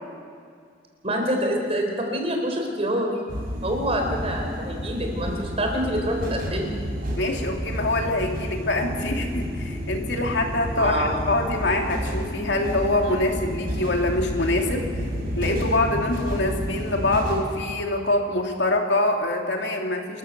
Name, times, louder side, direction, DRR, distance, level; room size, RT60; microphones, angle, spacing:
voice 1, 1.0-3.1 3.6-6.8 10.7-11.2, equal, 35° right, 3 dB, 4.0 m, -26 dB
sound 1, 3.3-17.4, equal, 55° right, 5.3 m, -30 dB
voice 2, 7.2-14.9 15.3-20.2, left 2 dB, 75° left, 2 dB, 2.7 m, -24 dB
28.0 x 14.5 x 6.8 m, 2.2 s
head